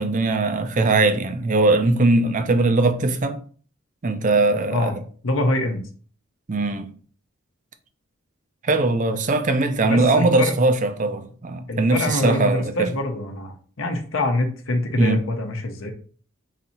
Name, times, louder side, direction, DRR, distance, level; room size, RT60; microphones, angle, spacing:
voice 1, 0.0-3.4 4.0-4.9 6.5-6.9 8.6-12.9 15.0-15.2, right 2 dB, 40° right, 0.5 m, -20 dB
voice 2, 5.2-5.8 9.8-10.5 11.7-15.9, left 2 dB, 70° left, 0.8 m, -25 dB
4.0 x 2.8 x 4.2 m
head